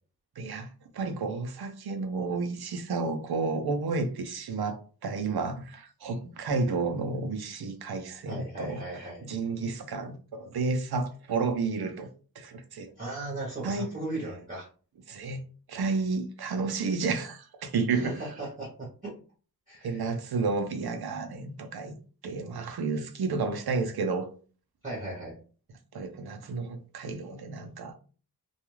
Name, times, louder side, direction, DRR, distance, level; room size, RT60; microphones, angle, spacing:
voice 1, 0.4-0.7 0.9-8.8 9.2-12.1 12.4-12.9 13.6-13.9 15.1-15.4 15.7-18.2 19.8-21.9 22.2-24.3 25.9-27.9, right 4 dB, 80° right, 0.6 m, -31 dB
voice 2, 8.3-9.3 13.0-14.7 17.9-19.1 19.7-20.1 24.8-25.4, right 2 dB, 20° right, 0.8 m, -37 dB
2.3 x 2.3 x 3.0 m
wide cardioid pair, 90°, 37 cm